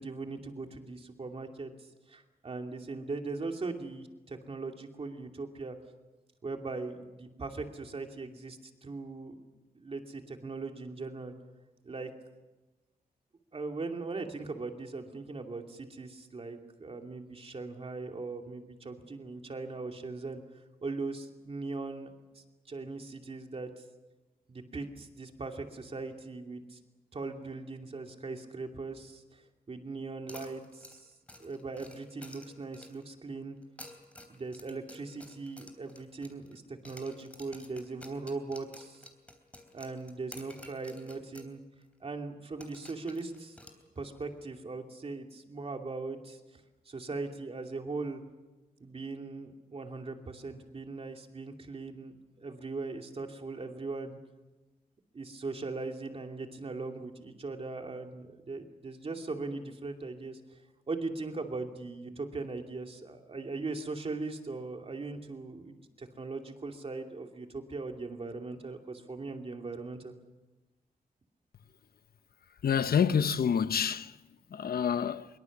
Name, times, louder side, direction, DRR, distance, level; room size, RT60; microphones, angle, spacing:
voice 1, 0.0-5.8 6.4-9.4 9.7-11.3 11.8-12.1 13.5-20.4 20.8-23.8 24.5-26.8 27.1-31.1 31.4-33.6 34.3-39.1 39.7-41.6 42.0-43.6 44.0-48.2 48.8-54.2 55.1-60.6 60.9-70.1, right 3 dB, 40° right, 2.6 m, -39 dB
sound 1, 30.3-33.1 33.6-36.6 36.8-41.5 41.8-41.9 42.6-44.2, left 1 dB, 10° left, 3.3 m, -51 dB
voice 2, 72.6-74.1 74.5-75.3, left 7 dB, 80° left, 1.0 m, -27 dB
24.5 x 23.0 x 7.3 m
wide cardioid pair, 165°, 16 cm